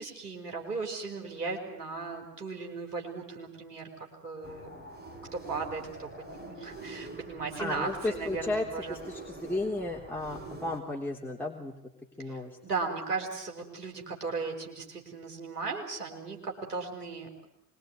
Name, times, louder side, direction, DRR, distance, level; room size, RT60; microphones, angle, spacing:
voice 1, 0.0-4.7 5.1-9.0 12.2-17.5, right 4 dB, 75° right, 2 dB, 5.3 m, -37 dB
sound 1, 4.4-10.8, right 2 dB, 20° right, 6.0 m, -45 dB
voice 2, 7.6-11.7 12.2-12.6, left 2 dB, 5° left, -2 dB, 3.5 m, -34 dB
25.5 x 22.0 x 9.6 m, 0.81 s
figure-of-eight pair, 60°, 47 cm